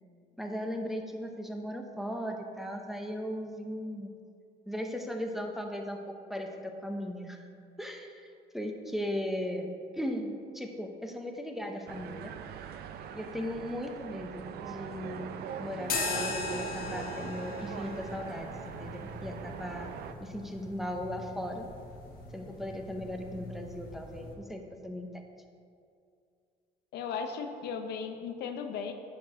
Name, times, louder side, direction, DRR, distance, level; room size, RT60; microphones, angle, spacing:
voice 1, 0.4-4.1 4.7-7.5 7.8-8.3 8.5-9.7 9.9-12.3 13.1-15.3 15.6-19.9 20.2-21.7 22.3-25.1, equal, ahead, 2 dB, 0.7 m, -37 dB
sound 1, 11.9-20.1, right 8 dB, 70° right, 0.5 m, -42 dB
sound 2, 15.8-24.3, left 3 dB, 60° left, 1.5 m, -39 dB
voice 2, 26.9-28.9, left 6 dB, 75° left, 6 dB, 0.8 m, -36 dB
10.0 x 4.6 x 4.9 m, 2.4 s
cardioid pair, 110°, 17 cm